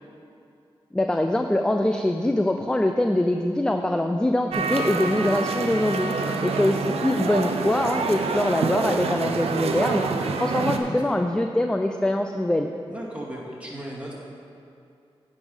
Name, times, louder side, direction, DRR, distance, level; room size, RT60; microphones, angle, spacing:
voice 1, 0.9-6.1 6.4-10.1 10.3-12.7, left 1 dB, 10° left, 5 dB, 0.4 m, -23 dB
sound 1, 4.5-10.8, right 4 dB, 90° right, 0.5 m, -27 dB
voice 2, 6.1-6.6 10.8-11.2 12.9-14.1, right 1 dB, 15° right, -5 dB, 2.2 m, -36 dB
9.2 x 5.3 x 5.5 m, 2.6 s
cardioid pair, 65°, 10 cm